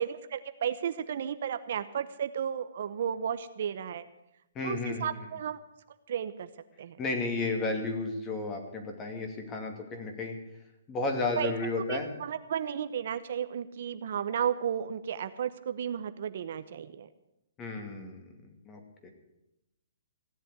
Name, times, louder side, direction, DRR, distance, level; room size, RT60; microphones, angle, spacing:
voice 1, 0.0-4.1 4.6-5.6 6.1-6.5 6.8-7.0 11.4-11.5 11.9-17.1, right 8 dB, 55° right, 11 dB, 0.9 m, -33 dB
voice 2, 4.5-5.1 7.0-10.4 10.9-12.1 17.6-19.1, left 3 dB, 20° left, 3 dB, 2.5 m, -33 dB
16.5 x 7.7 x 9.6 m, 0.89 s
hypercardioid pair, 155°, 0 cm